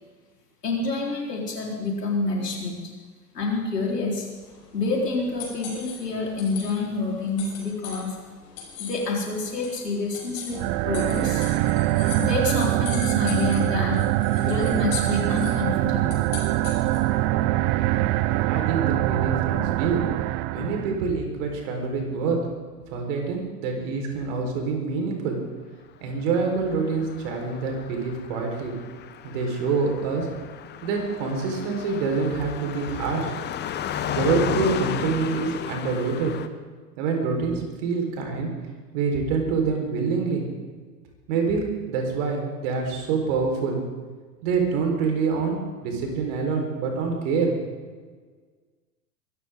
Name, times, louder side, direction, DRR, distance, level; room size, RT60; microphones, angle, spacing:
voice 1, 0.6-2.8 3.3-4.3 4.7-8.2 8.8-10.6 10.8-11.5 12.2-14.0 14.4-16.2, left 3 dB, 80° left, -2 dB, 4.4 m, -27 dB
sound 1, 4.3-17.2, left 6 dB, 45° left, 6.0 m, -40 dB
sound 2, 10.5-21.0, right 16 dB, 30° right, 0.6 m, -23 dB
voice 2, 18.5-20.0 20.5-22.4 22.9-25.4 26.0-28.7 29.2-30.3 30.8-33.3 34.1-36.3 37.0-38.5 38.9-40.4 41.3-43.8 44.4-47.5, right 4 dB, 50° right, 2 dB, 4.6 m, -26 dB
Car passing by, 26.5-36.5, left 9 dB, 20° left, 0.9 m, -34 dB
22.5 x 14.5 x 3.8 m, 1.5 s
figure-of-eight pair, 95°, 47 cm